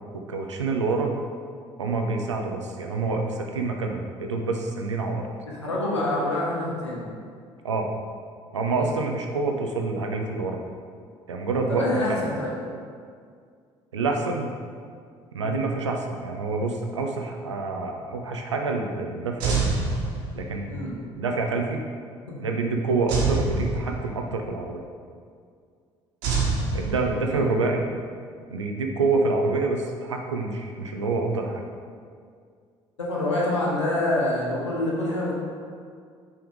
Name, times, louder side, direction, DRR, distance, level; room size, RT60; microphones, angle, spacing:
voice 1, 0.1-1.2 1.8-5.3 7.6-7.9 8.5-10.6 11.3-12.2 13.9-14.5 15.3-19.8 20.3-20.7 21.2-21.8 22.4-24.9 26.7-27.8 28.5-31.7, right 3 dB, 85° right, 2 dB, 0.5 m, -27 dB
voice 2, 5.5-7.1 8.8-9.0 11.7-12.5 15.4-15.6 20.6-21.0 22.3-22.4 27.3-27.5 33.0-35.3, left 1 dB, 85° left, -5 dB, 1.1 m, -26 dB
sound 1, 19.4-20.7 23.1-24.4 26.2-27.5, right 4 dB, 60° right, 1.4 m, -26 dB
6.0 x 3.5 x 5.2 m, 2.1 s
figure-of-eight pair, 55°, 15 cm